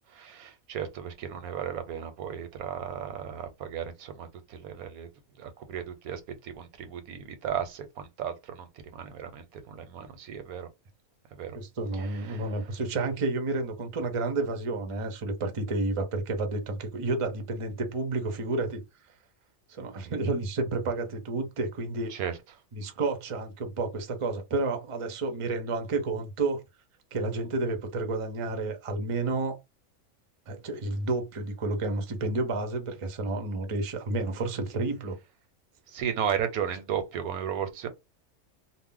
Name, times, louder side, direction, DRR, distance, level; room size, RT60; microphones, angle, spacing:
voice 1, 0.1-5.1 5.4-10.7 11.3-11.6 12.0-12.5 22.1-22.4 35.9-37.9, right 8 dB, 90° right, 1.1 m, -35 dB
voice 2, 11.5-18.8 19.7-22.1 22.7-26.6 27.1-29.6 30.5-35.2, right 3 dB, 45° right, 0.4 m, -30 dB
2.5 x 2.0 x 3.7 m
omnidirectional pair, 1.5 m